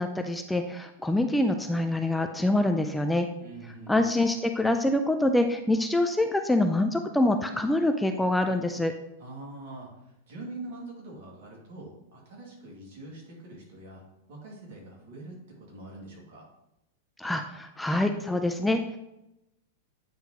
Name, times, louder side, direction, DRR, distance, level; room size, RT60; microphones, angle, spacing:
voice 1, 0.0-3.3 3.9-8.9 17.2-19.0, left 1 dB, 5° left, 5 dB, 0.4 m, -25 dB
voice 2, 3.4-4.0 9.2-9.9 10.3-14.0 14.3-16.5, right 2 dB, 60° right, -2 dB, 2.1 m, -44 dB
8.8 x 3.6 x 2.9 m, 0.88 s
hypercardioid pair, 95°, 0 cm